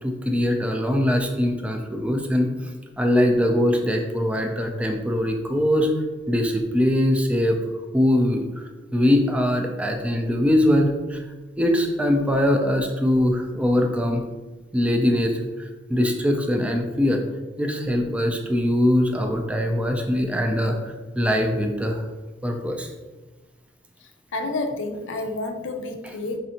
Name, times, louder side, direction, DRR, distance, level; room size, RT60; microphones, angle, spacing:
voice 1, 0.0-5.9 6.3-7.6 7.9-8.6 8.9-11.2 11.6-14.2 14.7-17.2 17.6-22.0 22.4-22.9, left 1 dB, 5° right, 3 dB, 0.3 m, -22 dB
voice 2, 24.0-26.4, left 2 dB, 70° left, 5 dB, 0.5 m, -30 dB
4.9 x 2.6 x 2.8 m, 1.2 s
head